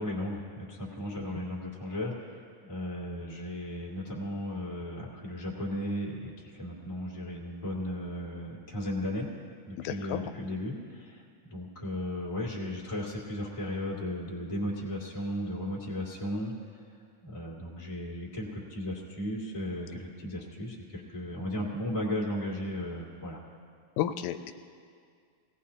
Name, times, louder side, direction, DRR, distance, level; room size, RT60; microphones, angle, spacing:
voice 1, 0.0-9.3 9.7-16.5 17.2-23.4, left 1 dB, 15° left, -4 dB, 1.8 m, -35 dB
voice 2, 9.8-10.3 24.0-24.5, left 11 dB, 85° left, 8 dB, 2.0 m, -32 dB
20.5 x 17.5 x 2.8 m, 2.2 s
omnidirectional pair, 3.4 m